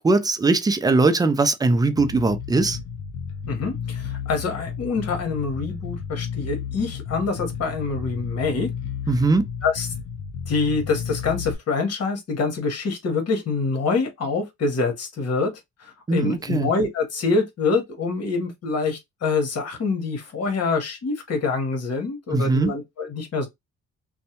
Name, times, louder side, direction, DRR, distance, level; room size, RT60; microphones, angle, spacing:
voice 1, 0.0-2.8 9.1-9.5 16.1-16.7 22.3-22.7, right 3 dB, 15° right, 0.4 m, -20 dB
Bass guitar, 2.0-11.6, left 7 dB, 80° left, 0.7 m, -32 dB
voice 2, 3.5-8.7 9.6-9.9 10.5-15.5 15.8-23.5, left 4 dB, 55° left, 1.3 m, -25 dB
2.6 x 2.2 x 2.9 m
cardioid pair, 90°, 30 cm